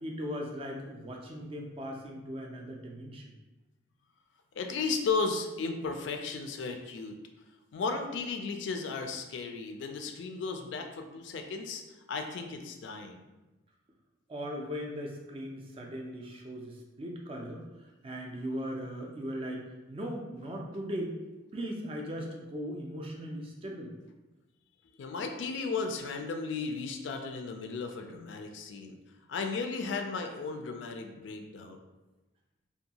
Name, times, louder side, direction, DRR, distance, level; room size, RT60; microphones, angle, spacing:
voice 1, 0.0-3.3 14.3-21.2 21.5-23.9, equal, 30° right, 1 dB, 0.3 m, -38 dB
voice 2, 4.5-7.2 7.7-11.8 12.1-13.2 25.0-29.0 29.3-31.8, left 4 dB, 65° left, 5 dB, 0.3 m, -35 dB
2.6 x 2.3 x 2.8 m, 1.1 s
head